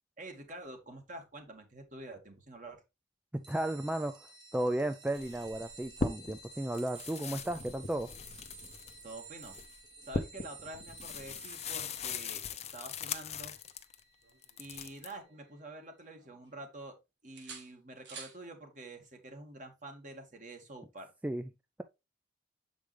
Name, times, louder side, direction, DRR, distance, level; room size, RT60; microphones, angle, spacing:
voice 1, 0.2-2.8 9.0-9.6 10.0-13.5 14.6-17.0 17.2-21.1, right 2 dB, 45° right, 1.9 m, -47 dB
voice 2, 3.3-4.3 4.5-8.1 21.2-21.5, right 1 dB, 10° right, 0.4 m, -34 dB
sound 1, 3.4-15.5, right 4 dB, 25° right, 1.4 m, -53 dB
sound 2, 5.2-6.5 6.7-14.0 14.4-15.1, left 4 dB, 35° left, 0.7 m, -40 dB
sound 3, 14.2-15.8 16.1-16.9 17.4-18.4 20.3-20.5, right 5 dB, 85° right, 1.6 m, -52 dB
7.6 x 5.1 x 3.3 m
head